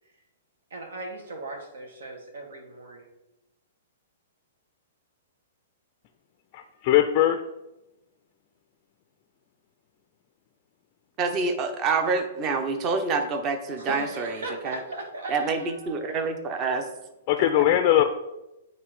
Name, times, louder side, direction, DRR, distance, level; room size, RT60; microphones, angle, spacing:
voice 1, 0.7-3.1 13.8-16.0, right 2 dB, 85° right, 3 dB, 1.7 m, -37 dB
voice 2, 6.5-7.4 17.3-18.0, left 12 dB, 35° left, 7 dB, 0.4 m, -20 dB
voice 3, 11.2-14.8 15.3-16.9 17.4-17.7, right 4 dB, 25° right, 7 dB, 0.7 m, -27 dB
8.4 x 3.2 x 4.8 m, 0.95 s
hypercardioid pair, 160°, 0 cm